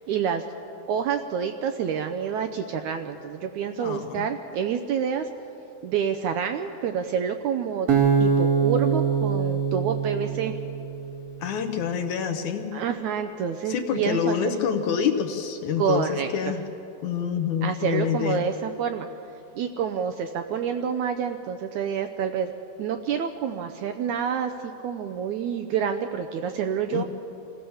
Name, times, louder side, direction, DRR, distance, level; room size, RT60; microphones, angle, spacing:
voice 1, 0.1-0.4 0.9-5.3 5.8-7.9 8.2-10.5 12.7-14.3 15.8-16.3 17.6-19.1 19.6-22.5 22.8-27.0, right 7 dB, 75° right, 6 dB, 1.8 m, -28 dB
voice 2, 3.8-4.3 11.4-12.7 13.7-16.6 17.0-18.4 26.9-27.0, left 7 dB, 65° left, 6 dB, 2.2 m, -27 dB
Acoustic guitar, 7.9-11.1, right 6 dB, 50° right, 1.9 m, -23 dB
26.5 x 16.0 x 7.1 m, 2.9 s
omnidirectional pair, 4.1 m